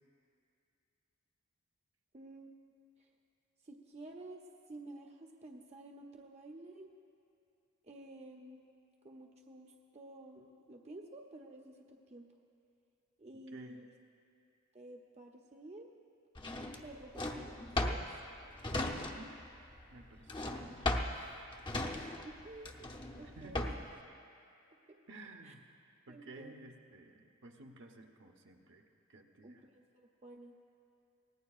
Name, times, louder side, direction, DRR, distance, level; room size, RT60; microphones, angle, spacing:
voice 1, 2.1-2.5 3.0-3.1 3.6-4.4 4.7-6.9 7.8-8.7 9.0-12.3 13.2-13.9 14.7-15.9 16.8-18.0 22.2-22.7 23.2-23.7 25.4-25.5 26.1-26.5 29.4-29.8 30.2-30.6, right 2 dB, 30° right, 2 dB, 0.7 m, -51 dB
voice 2, 13.5-13.8 19.0-19.4 19.9-20.7 23.2-23.8 25.1-25.6 26.1-28.8 29.1-29.6, right 2 dB, 60° right, 3 dB, 1.0 m, -53 dB
Drawer open or close, 16.4-19.5 19.7-24.0, left 2 dB, 25° left, 0.7 m, -37 dB
24.0 x 18.0 x 2.4 m, 2.6 s
head